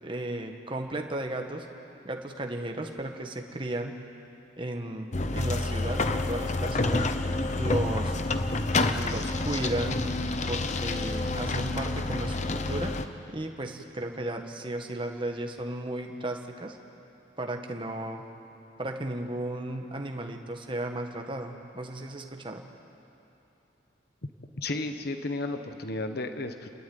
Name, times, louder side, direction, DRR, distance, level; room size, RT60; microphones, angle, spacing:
voice 1, 0.0-1.7 2.0-3.9 4.6-7.1 7.6-8.2 8.9-10.0 10.5-12.9 13.3-16.8 17.4-18.2 18.8-22.6, right 1 dB, 25° right, 3 dB, 1.4 m, -34 dB
sound 1, 5.1-13.0, left 2 dB, 35° left, 0.8 m, -28 dB
voice 2, 24.6-26.7, left 2 dB, 55° left, 7 dB, 1.2 m, -33 dB
30.0 x 12.5 x 9.5 m, 3.0 s
head